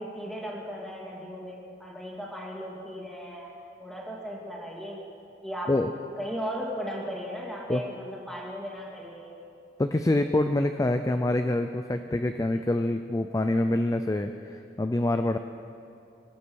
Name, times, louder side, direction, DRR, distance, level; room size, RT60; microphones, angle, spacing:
voice 1, 0.0-3.5 3.8-5.0 5.4-5.7 6.2-9.4, equal, ahead, -3 dB, 2.3 m, -36 dB
voice 2, 9.8-15.4, left 1 dB, 20° left, 8 dB, 0.4 m, -26 dB
23.0 x 8.4 x 6.3 m, 2.7 s
head